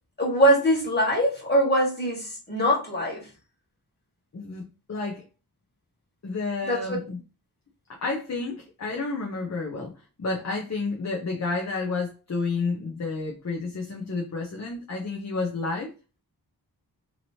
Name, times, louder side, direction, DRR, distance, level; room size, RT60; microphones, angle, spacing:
voice 1, 0.2-3.3 6.7-7.0, equal, 25° left, 1.5 m, -23 dB
voice 2, 4.3-5.2 6.2-7.2 7.9-9.9 10.2-15.9, left 3 dB, 40° left, 0.6 m, -30 dB
2.9 x 2.9 x 2.8 m
wide cardioid pair, 70°, 40 cm